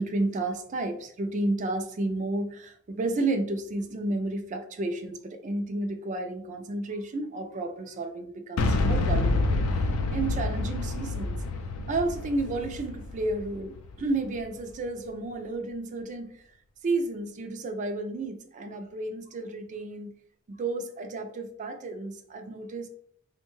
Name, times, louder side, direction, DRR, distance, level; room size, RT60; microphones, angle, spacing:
voice 1, 0.0-11.4 11.9-16.6 16.8-20.1 20.5-22.9, right 2 dB, 35° right, 6 dB, 0.3 m, -32 dB
Boom, 8.6-14.5, left 2 dB, 85° left, 0.4 m, -28 dB
3.5 x 2.1 x 3.0 m, 0.64 s
head